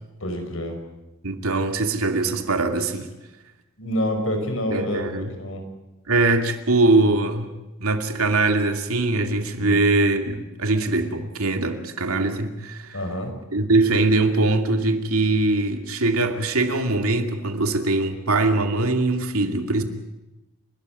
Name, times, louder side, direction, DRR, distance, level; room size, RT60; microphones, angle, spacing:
voice 1, 0.2-0.8 3.8-5.6 9.6-9.8 12.9-13.3, equal, 70° left, 5 dB, 5.4 m, -27 dB
voice 2, 1.2-3.1 4.7-5.3 6.1-7.5 7.8-13.0 13.5-19.8, right 2 dB, 85° right, 6 dB, 2.5 m, -22 dB
29.5 x 13.5 x 9.3 m, 1.0 s
head